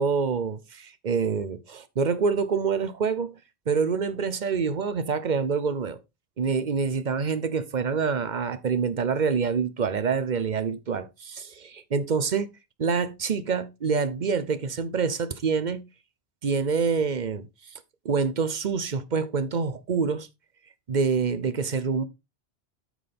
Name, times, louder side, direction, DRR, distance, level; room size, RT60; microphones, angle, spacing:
voice 1, 0.0-3.4 3.7-6.0 6.4-12.5 12.8-15.9 16.4-17.5 18.0-20.3 20.9-22.0, right 5 dB, 50° right, 0.8 m, -26 dB
9.2 x 6.4 x 3.4 m
omnidirectional pair, 1.1 m